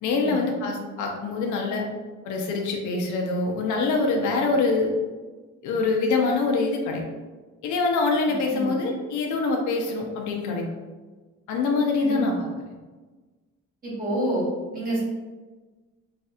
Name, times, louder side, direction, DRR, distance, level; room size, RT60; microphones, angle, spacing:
voice 1, 0.0-1.8 2.2-5.0 5.6-7.0 7.6-10.7 11.5-12.5, left 3 dB, 85° left, 2 dB, 0.6 m, -24 dB
voice 2, 13.8-14.5 14.7-15.0, right 1 dB, 30° right, -6 dB, 1.3 m, -28 dB
3.2 x 2.8 x 2.4 m, 1.3 s
cardioid pair, 110°, 29 cm